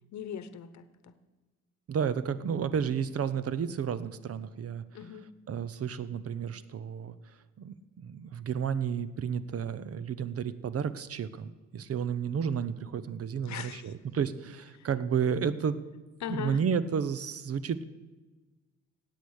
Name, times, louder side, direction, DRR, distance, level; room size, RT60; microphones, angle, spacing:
voice 1, 0.1-1.1 4.9-5.3 13.4-13.9 14.7-14.9 16.2-16.6, left 8 dB, 65° left, 12 dB, 1.0 m, -39 dB
voice 2, 1.9-4.8 5.5-15.8 16.3-17.8, right 7 dB, 50° right, 15 dB, 0.8 m, -32 dB
17.0 x 8.3 x 6.4 m, 1.3 s
cardioid pair, 90°, 30 cm